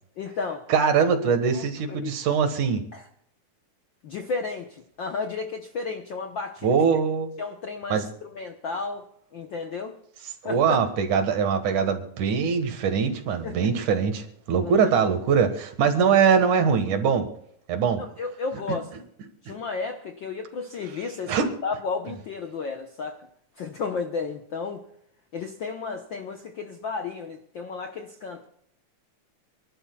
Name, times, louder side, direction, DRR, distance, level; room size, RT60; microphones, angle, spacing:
voice 1, 0.2-0.7 1.0-1.1 1.5-2.1 2.9-3.1 4.0-6.7 7.4-9.1 9.3-10.0 10.4-10.8 13.4-13.7 14.6-14.9 18.0-18.9 19.4-23.2 23.6-24.8 25.3-28.4, left 4 dB, 70° left, 4 dB, 1.1 m, -33 dB
voice 2, 0.7-2.8 6.6-7.3 7.9-8.1 10.4-17.3 17.7-18.0 18.7-18.8 19.5-19.6 21.3-21.5, right 6 dB, 85° right, 7 dB, 3.1 m, -22 dB
28.5 x 11.5 x 2.3 m, 0.69 s
omnidirectional pair, 3.4 m